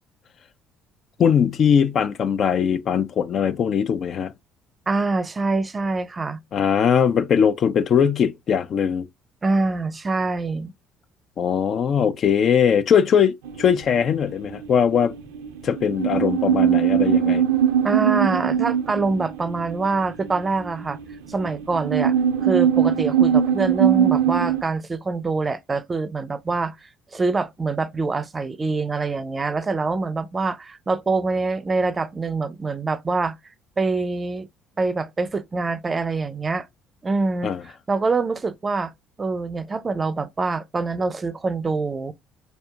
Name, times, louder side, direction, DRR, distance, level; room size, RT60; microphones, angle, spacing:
voice 1, 1.2-4.3 6.5-9.1 11.4-15.1 15.6-17.4 37.4-37.6, left 7 dB, 50° left, 0.4 m, -20 dB
voice 2, 4.9-6.4 9.4-10.7 17.8-21.0 21.3-22.1 22.4-33.4 33.8-34.5 34.8-36.7 37.0-38.9 39.2-42.1, right 3 dB, 30° right, 0.4 m, -25 dB
sound 1, 13.5-14.7 14.9-24.6, right 9 dB, 90° right, 0.4 m, -21 dB
4.2 x 2.7 x 2.2 m
supercardioid pair, 70°, 0 cm